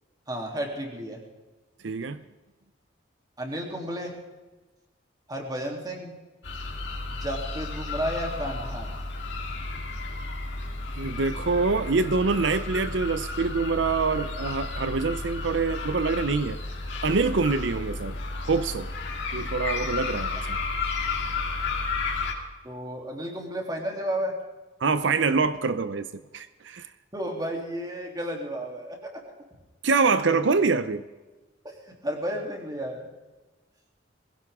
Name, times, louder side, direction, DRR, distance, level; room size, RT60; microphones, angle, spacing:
voice 1, 0.3-1.2 3.4-4.2 5.3-6.2 7.1-8.9 22.6-24.4 27.1-29.3 31.6-31.8 32.0-33.1, equal, 20° right, 1 dB, 3.1 m, -32 dB
voice 2, 1.8-2.2 11.0-16.6 17.0-18.2 18.4-18.9 19.3-20.6 24.8-26.9 29.8-31.0, right 4 dB, 80° right, 12 dB, 0.6 m, -25 dB
sound 1, 6.4-22.3, left 3 dB, 70° left, 2.8 m, -32 dB
21.5 x 16.5 x 3.7 m, 1.2 s
head